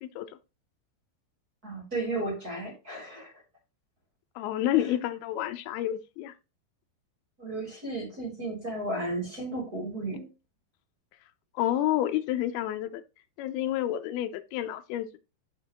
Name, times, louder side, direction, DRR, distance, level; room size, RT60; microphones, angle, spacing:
voice 1, 1.6-3.3 4.8-4.9 7.4-10.3, right 2 dB, 25° right, 2.8 m, -34 dB
voice 2, 4.4-6.3 11.6-13.0 13.4-15.2, left 13 dB, 90° left, 2.2 m, -29 dB
10.5 x 5.9 x 3.0 m
omnidirectional pair, 5.3 m